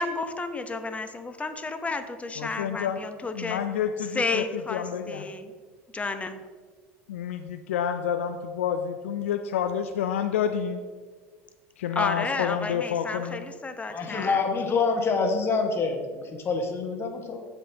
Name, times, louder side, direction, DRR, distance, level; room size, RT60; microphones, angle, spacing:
voice 1, 0.0-3.6 4.1-5.4 5.9-6.4 11.9-14.4, left 3 dB, 20° left, 8 dB, 0.9 m, -31 dB
voice 2, 2.4-3.0 3.3-5.2 7.1-10.8 11.8-13.5, left 8 dB, 80° left, 7 dB, 0.4 m, -29 dB
voice 3, 13.9-17.4, left 4 dB, 35° left, 4 dB, 1.6 m, -26 dB
16.0 x 5.3 x 2.9 m, 1.5 s
hypercardioid pair, 75°, 7 cm